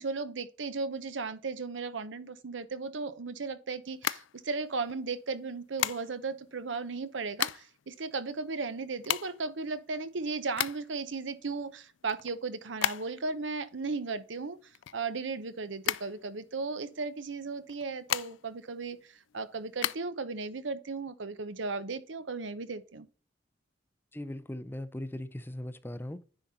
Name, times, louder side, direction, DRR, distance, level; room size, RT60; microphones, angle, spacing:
voice 1, 0.0-14.6 14.9-23.1, right 4 dB, 75° right, 0.8 m, -36 dB
sound 1, 3.9-4.9 5.8-6.4 7.0-7.8 8.1-8.2 8.4-11.0 11.5-13.4 13.6-15.4 15.8-16.8 17.6-18.6 19.0-20.0, left 12 dB, 75° left, 0.4 m, -34 dB
voice 2, 24.1-26.2, left 1 dB, 10° left, 0.5 m, -39 dB
9.8 x 3.8 x 4.1 m
head